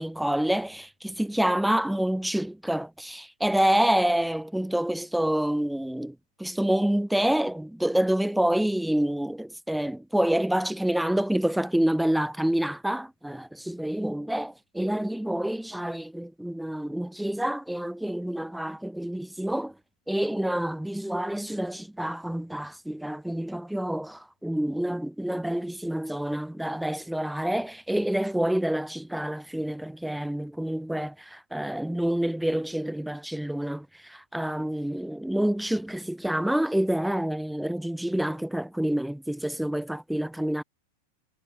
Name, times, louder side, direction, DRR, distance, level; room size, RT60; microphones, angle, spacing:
voice 1, 0.0-19.7 20.1-40.6, right 1 dB, ahead, 0.7 m, -27 dB
figure-of-eight pair, 90°, 0 cm